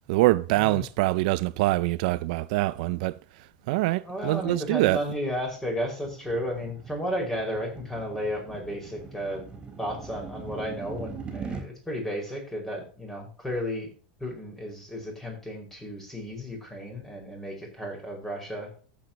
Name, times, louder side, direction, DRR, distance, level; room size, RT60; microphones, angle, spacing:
voice 1, 0.1-5.0, right 19 dB, 65° right, 0.5 m, -25 dB
voice 2, 4.0-9.5 9.8-13.9 14.2-18.7, equal, 5° left, 5.2 m, -33 dB
sound 1, 5.2-11.7, right 5 dB, 20° right, 4.2 m, -41 dB
14.5 x 8.4 x 2.9 m
supercardioid pair, 135°, 5 cm